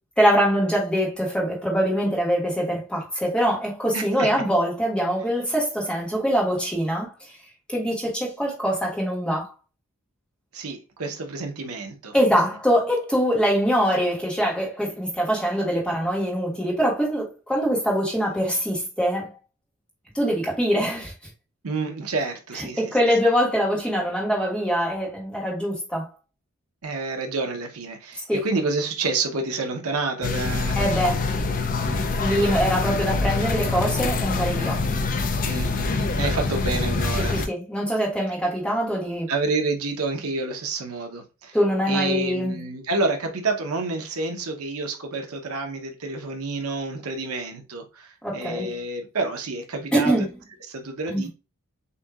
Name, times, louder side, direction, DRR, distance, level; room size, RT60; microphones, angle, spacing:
voice 1, 0.2-7.4 7.7-9.5 12.1-19.3 20.1-21.1 22.5-26.1 28.3-28.4 30.7-31.3 32.2-34.8 37.2-39.3 41.5-42.7 48.2-48.8 49.9-50.3 51.1-51.3, equal, 5° left, 1.4 m, -23 dB
voice 2, 3.9-4.3 10.5-12.1 21.6-22.9 26.8-30.9 31.8-32.1 35.4-37.4 39.3-41.6 41.9-50.1 50.7-51.3, right 3 dB, 80° right, 0.8 m, -29 dB
sound 1, 30.2-37.5, left 3 dB, 40° left, 0.5 m, -25 dB
6.7 x 2.7 x 2.3 m
head